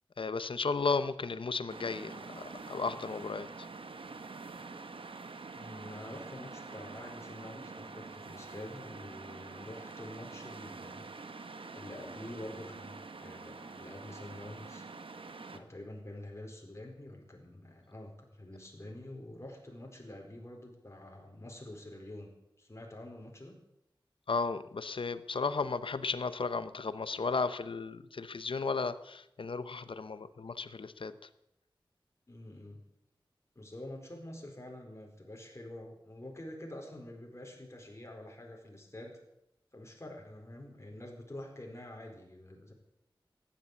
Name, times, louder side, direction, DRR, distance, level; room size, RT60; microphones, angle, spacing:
voice 1, 0.2-3.5 24.3-31.1, left 4 dB, 75° left, 13 dB, 0.8 m, -34 dB
sound 1, 1.7-15.6, right 4 dB, 85° right, 1.2 m, -46 dB
voice 2, 5.5-11.0 11.7-14.9 15.5-22.3 22.6-23.6 32.3-32.8 33.5-39.2 39.7-42.7, left 1 dB, 30° left, 1 dB, 4.4 m, -47 dB
15.0 x 11.0 x 8.4 m, 0.84 s
wide cardioid pair, 60°, 9 cm